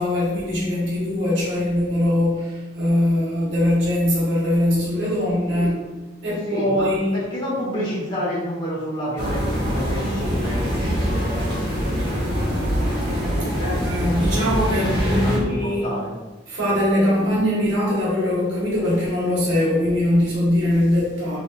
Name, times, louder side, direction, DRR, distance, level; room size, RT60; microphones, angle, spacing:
voice 1, 0.0-5.7 6.2-7.2 13.6-15.9 16.5-21.4, left 1 dB, 90° right, -6 dB, 1.4 m, -21 dB
voice 2, 6.5-12.4 13.3-16.1, equal, 25° left, -7 dB, 1.3 m, -30 dB
sound 1, 9.2-15.4, equal, 60° right, 1.1 m, -24 dB
3.9 x 3.3 x 2.5 m, 1.2 s
head